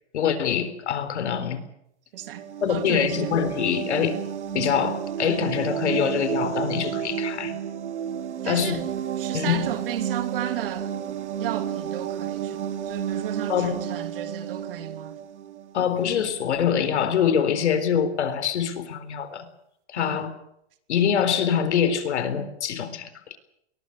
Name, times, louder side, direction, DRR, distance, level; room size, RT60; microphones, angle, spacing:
voice 1, 0.1-1.6 2.6-4.1 4.5-7.5 8.4-8.8 9.3-9.7 13.5-13.8 15.7-19.5 19.9-20.3 20.9-23.4, left 8 dB, 80° left, 4.0 m, -24 dB
voice 2, 2.1-2.4 2.7-3.4 8.4-8.9 9.2-11.0 11.4-15.2 15.8-15.9 20.0-20.2, right 12 dB, 55° right, 3.1 m, -34 dB
sound 1, 2.2-15.8, right 9 dB, 90° right, 2.8 m, -31 dB
22.5 x 22.0 x 6.8 m
supercardioid pair, 170°, 34 cm